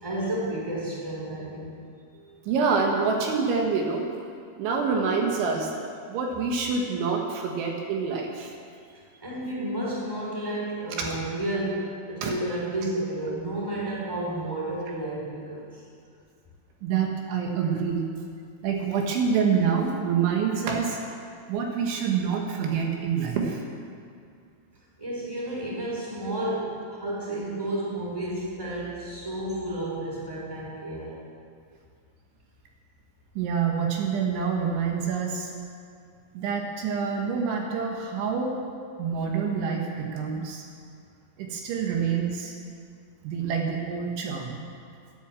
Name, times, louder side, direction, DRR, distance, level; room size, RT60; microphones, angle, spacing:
voice 1, 0.0-1.8 9.2-15.8 25.0-31.2, right 1 dB, 5° right, -5 dB, 3.5 m, -31 dB
voice 2, 2.5-4.1 4.6-5.7 6.1-8.6 11.0-11.2 12.2-12.3 16.8-18.0 18.6-21.0 21.5-23.6 26.3-26.4 33.4-35.5 36.4-38.6 39.0-40.6 41.4-42.5 43.2-44.6, right 6 dB, 75° right, 1 dB, 3.7 m, -26 dB
15.5 x 10.0 x 7.4 m, 2.3 s
omnidirectional pair, 5.5 m